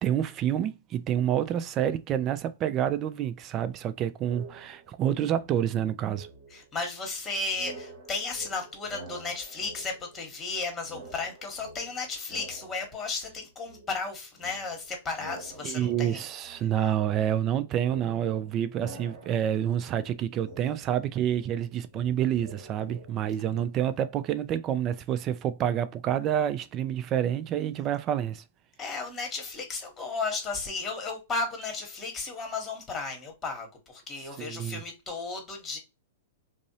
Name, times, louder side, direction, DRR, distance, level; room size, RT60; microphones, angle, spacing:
voice 1, 0.0-6.3 15.6-28.4 34.4-34.8, right 10 dB, 35° right, 0.3 m, -28 dB
sound 1, 4.2-5.1 5.3-7.2 7.5-10.6 10.8-13.4 13.7-23.6, right 2 dB, 70° right, 0.8 m, -48 dB
voice 2, 6.5-16.2 28.8-35.8, left 3 dB, 20° left, 1.1 m, -34 dB
2.6 x 2.0 x 2.6 m
hypercardioid pair, 115°, 0 cm